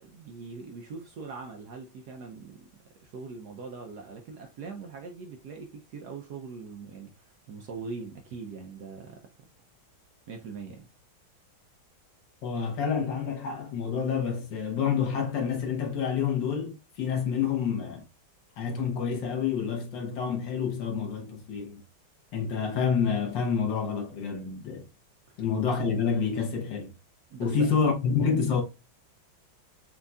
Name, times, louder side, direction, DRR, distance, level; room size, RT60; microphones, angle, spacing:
voice 1, 0.0-2.7 3.0-9.2 10.3-10.9 25.3-25.4 27.3-27.8, right 4 dB, 70° right, 1.0 m, -42 dB
voice 2, 12.4-18.0 18.6-21.8 22.3-24.9 25.4-26.9 27.4-28.6, left 6 dB, 65° left, 1.7 m, -28 dB
4.5 x 3.9 x 2.3 m
omnidirectional pair, 2.2 m